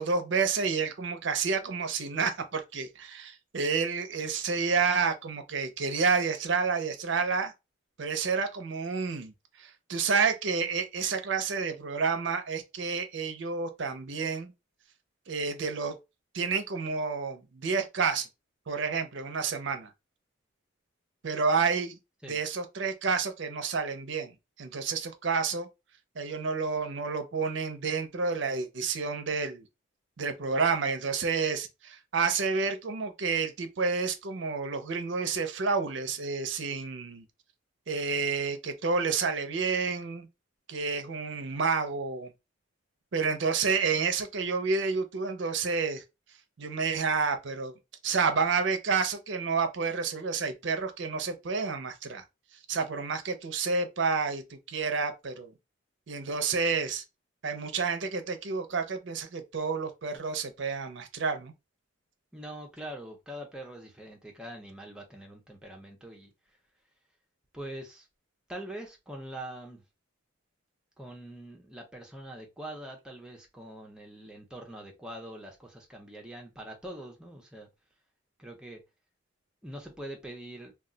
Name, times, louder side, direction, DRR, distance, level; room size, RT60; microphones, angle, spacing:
voice 1, 0.0-7.5 8.0-9.3 9.6-14.5 15.3-16.0 16.3-18.3 18.7-19.9 21.2-22.0 22.2-24.3 24.6-25.7 26.2-29.6 30.2-37.2 37.9-40.3 40.7-42.3 43.1-46.0 46.6-47.7 48.0-52.2 52.7-55.5 56.1-57.0 57.4-61.5, right 5 dB, 65° right, 0.5 m, -29 dB
voice 2, 62.3-66.3 67.5-68.1 68.5-69.8 71.0-77.7 78.4-78.8 79.6-80.7, right 1 dB, 5° right, 0.6 m, -43 dB
2.3 x 2.2 x 3.7 m
head